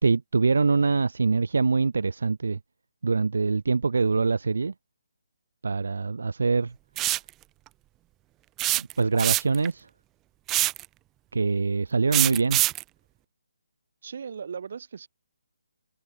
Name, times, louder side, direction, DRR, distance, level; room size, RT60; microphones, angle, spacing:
voice 1, 0.0-2.6 3.0-4.7 5.6-6.7 8.8-9.9 11.3-12.6, right 4 dB, 75° right, 2.0 m, -24 dB
sound 1, 7.0-7.3 8.6-9.7 10.5-10.8 12.1-12.8, right 16 dB, 15° right, 0.7 m, -24 dB
voice 2, 14.0-15.1, right 6 dB, 50° right, 7.9 m, -37 dB
hypercardioid pair, 165°, 0 cm